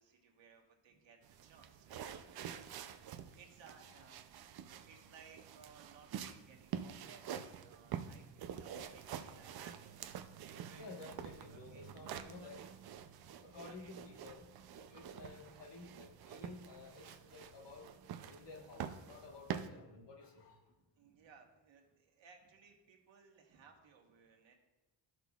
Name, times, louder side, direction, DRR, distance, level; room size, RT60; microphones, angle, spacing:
voice 1, 0.0-2.9 3.3-4.2 4.8-9.9 10.6-10.9 11.5-11.8 12.2-12.6 13.5-13.9 20.8-24.5, right 5 dB, 75° right, 2 dB, 1.3 m, -62 dB
sound 1, 1.2-19.7, right 8 dB, 55° right, 0.5 m, -47 dB
voice 2, 10.8-12.6 13.4-17.9 18.3-20.6, left 3 dB, 65° left, 0 dB, 1.4 m, -53 dB
14.0 x 5.9 x 2.3 m, 1.1 s
wide cardioid pair, 175°, 45 cm